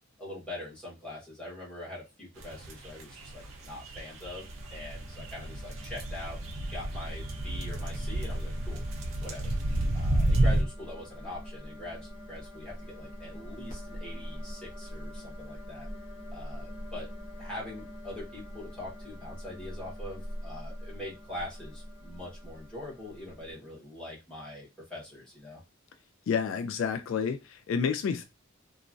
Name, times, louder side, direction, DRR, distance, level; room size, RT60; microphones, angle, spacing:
voice 1, 0.2-6.4 6.7-8.8 9.2-9.5 9.9-15.9 16.3-17.1 17.4-25.6, left 1 dB, 5° left, 1.3 m, -43 dB
sound 1, 2.4-10.6, right 1 dB, 80° right, 0.6 m, -31 dB
sound 2, 4.4-23.6, equal, 40° left, 0.9 m, -43 dB
voice 2, 26.3-28.3, left 6 dB, 65° left, 0.3 m, -29 dB
2.9 x 2.3 x 2.5 m
head